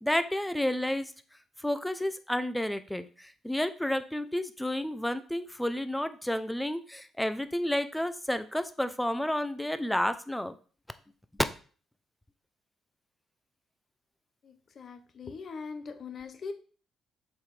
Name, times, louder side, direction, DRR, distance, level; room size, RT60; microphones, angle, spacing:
voice 1, 0.0-1.1 1.6-10.5, left 1 dB, 5° left, 11 dB, 0.7 m, -31 dB
voice 2, 14.8-16.5, left 5 dB, 50° left, 8 dB, 1.0 m, -40 dB
7.2 x 4.1 x 4.9 m, 0.40 s
cardioid pair, 90°, 0 cm